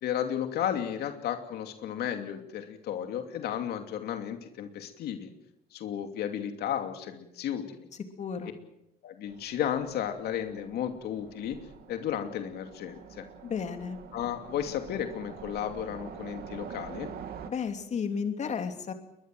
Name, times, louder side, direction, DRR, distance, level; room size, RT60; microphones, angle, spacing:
voice 1, 0.0-5.3 5.7-7.9 9.0-11.6 11.9-13.2 14.1-17.1, left 10 dB, 70° left, 6 dB, 2.7 m, -33 dB
voice 2, 8.2-8.6 13.4-14.0 17.5-18.9, left 6 dB, 45° left, 6 dB, 2.9 m, -33 dB
Train, 9.3-17.5, right 8 dB, 65° right, 2.9 m, -46 dB
21.5 x 21.5 x 7.8 m, 0.86 s
cardioid pair, 110°, 17 cm